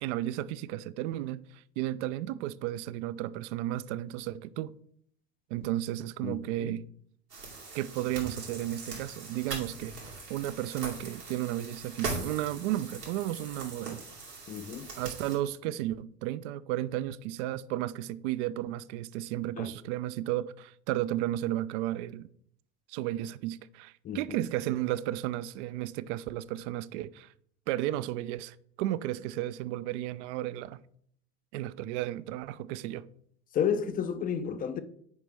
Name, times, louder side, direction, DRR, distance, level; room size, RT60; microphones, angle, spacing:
voice 1, 0.0-4.7 5.5-6.8 7.7-9.9 10.3-14.0 15.0-22.3 22.9-27.3 27.7-30.8 31.5-33.1, right 14 dB, 50° right, 0.5 m, -33 dB
voice 2, 6.2-6.7 14.5-14.9 19.6-19.7 24.0-24.2 33.5-34.8, left 7 dB, 20° left, 0.4 m, -31 dB
sound 1, 7.3-15.4, right 3 dB, 90° right, 2.7 m, -41 dB
9.6 x 5.0 x 3.4 m
figure-of-eight pair, 75°, 48 cm